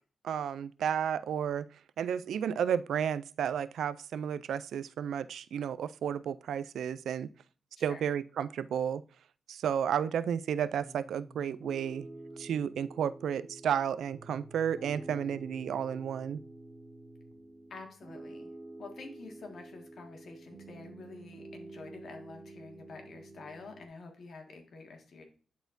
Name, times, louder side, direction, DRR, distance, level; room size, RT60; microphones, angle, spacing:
voice 1, 0.2-1.6 2.0-7.3 7.8-9.0 9.5-12.1 12.4-16.4, right 8 dB, 90° right, 17 dB, 0.3 m, -32 dB
Piano, 10.8-23.9, right 2 dB, 35° right, 1.3 m, -49 dB
voice 2, 17.7-18.5 18.8-25.2, left 3 dB, 70° left, 3 dB, 1.7 m, -48 dB
10.5 x 4.2 x 2.6 m, 0.39 s
cardioid pair, 85°, 0 cm